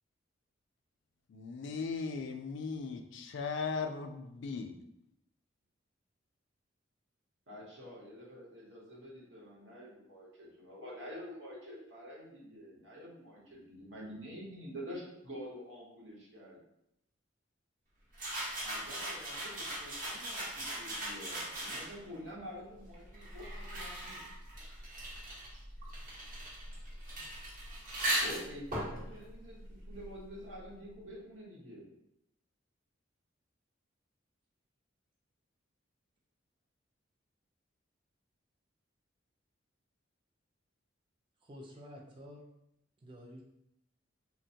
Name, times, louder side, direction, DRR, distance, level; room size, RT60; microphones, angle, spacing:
voice 1, 1.3-4.7, left 4 dB, 65° left, 6 dB, 0.3 m, -38 dB
voice 2, 7.5-16.6 18.6-24.3 28.2-31.9, equal, 70° right, -4 dB, 1.0 m, -48 dB
sound 1, 18.1-22.2 22.9-30.3, right 1 dB, 45° right, 0.9 m, -39 dB
voice 3, 41.4-42.4 43.0-43.4, equal, 25° right, -1 dB, 0.4 m, -50 dB
3.1 x 2.2 x 2.7 m, 0.80 s
head